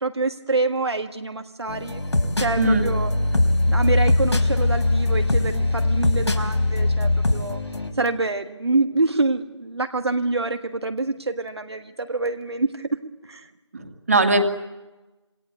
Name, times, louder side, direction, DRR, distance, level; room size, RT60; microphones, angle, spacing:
voice 1, 0.0-2.0 2.4-3.2 3.7-7.6 8.0-12.9 13.2-13.5, right 3 dB, 60° right, 7 dB, 1.6 m, -26 dB
sound 1, 1.7-7.9, left 2 dB, 70° left, 4.3 m, -21 dB
voice 2, 13.7-14.4, right 2 dB, 30° right, 6 dB, 2.3 m, -20 dB
27.5 x 23.0 x 8.1 m, 1.1 s
figure-of-eight pair, 175°, 15 cm